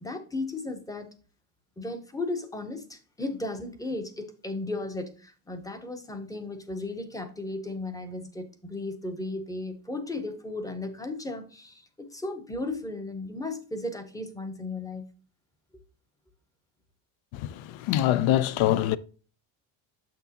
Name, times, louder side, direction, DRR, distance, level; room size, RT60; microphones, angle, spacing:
voice 1, 0.0-1.1 1.8-15.1, left 2 dB, 5° left, 0.6 m, -35 dB
voice 2, 17.8-19.0, left 13 dB, 75° left, 0.6 m, -23 dB
7.0 x 6.1 x 2.8 m
cardioid pair, 145°, 48 cm